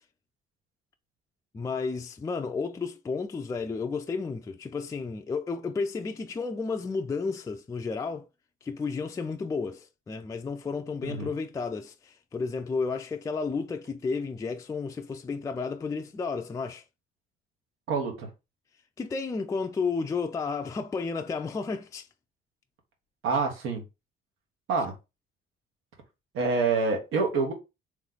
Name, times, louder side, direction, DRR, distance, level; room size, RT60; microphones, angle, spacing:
voice 1, 1.5-8.3 8.6-16.8 19.0-22.1, left 4 dB, 15° left, 0.3 m, -32 dB
voice 2, 17.9-18.3 23.2-23.8 24.7-24.9 26.3-27.5, right 4 dB, 85° right, 1.4 m, -26 dB
3.2 x 3.2 x 3.9 m
cardioid pair, 130°, 21 cm